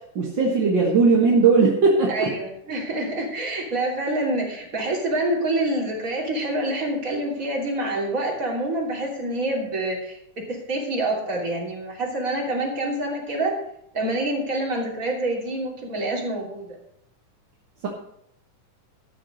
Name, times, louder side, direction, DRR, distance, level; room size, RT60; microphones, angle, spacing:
voice 1, 0.1-2.3, right 4 dB, 45° right, -2 dB, 1.7 m, -18 dB
voice 2, 2.1-13.6 13.9-16.8, right 1 dB, 25° right, -1 dB, 3.1 m, -27 dB
13.0 x 7.2 x 6.4 m, 0.73 s
omnidirectional pair, 3.6 m